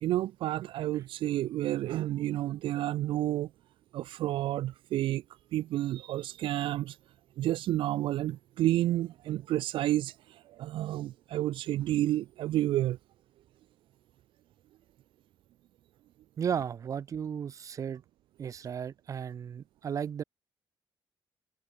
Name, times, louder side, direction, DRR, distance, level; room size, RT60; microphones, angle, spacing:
voice 1, 0.0-3.5 3.9-5.2 5.5-7.0 7.4-13.0, right 14 dB, 80° right, 0.5 m, -30 dB
voice 2, 16.4-18.0 18.4-20.2, right 8 dB, 40° right, 2.7 m, -34 dB
cardioid pair, 175°, 9 cm